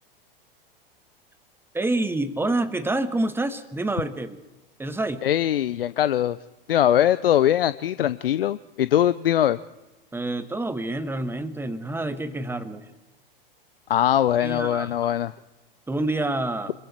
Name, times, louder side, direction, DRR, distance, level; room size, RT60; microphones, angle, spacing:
voice 1, 1.7-4.4 4.8-5.2 10.1-12.9 14.4-14.9 15.9-16.7, right 2 dB, 10° right, 10 dB, 1.7 m, -27 dB
voice 2, 5.2-6.4 6.7-9.6 13.9-15.3, left 11 dB, 75° left, 15 dB, 0.7 m, -21 dB
26.0 x 22.0 x 4.5 m, 1.0 s
hypercardioid pair, 100°, 29 cm